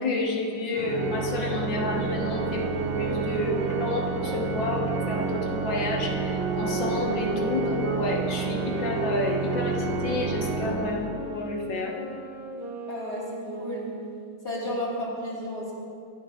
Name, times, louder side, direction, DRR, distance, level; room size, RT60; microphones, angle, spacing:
voice 1, 0.0-11.9, left 2 dB, 70° left, 0 dB, 2.1 m, -30 dB
Organ, 0.7-11.5, right 5 dB, 80° right, 1.7 m, -30 dB
sound 1, 2.5-8.1 8.7-14.3, right 2 dB, 10° right, 1.8 m, -35 dB
voice 2, 12.9-13.2 13.6-13.8 14.4-15.7, left 1 dB, 35° left, -5 dB, 3.4 m, -32 dB
22.0 x 12.0 x 2.5 m, 2.4 s
omnidirectional pair, 2.1 m